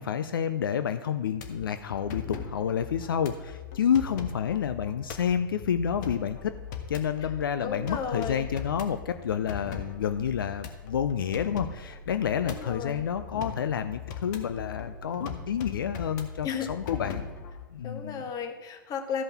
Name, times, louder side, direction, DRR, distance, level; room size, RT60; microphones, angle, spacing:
voice 1, 0.0-6.5 6.9-17.3 17.7-18.2, left 8 dB, 80° left, 10 dB, 0.6 m, -29 dB
sound 1, 1.3-17.7, left 6 dB, 60° left, 1.4 m, -40 dB
voice 2, 7.6-8.5 12.4-13.1 16.4-16.7 17.8-19.2, left 6 dB, 35° left, 6 dB, 1.5 m, -34 dB
13.5 x 5.4 x 5.9 m, 1.3 s
hypercardioid pair, 110°, 11 cm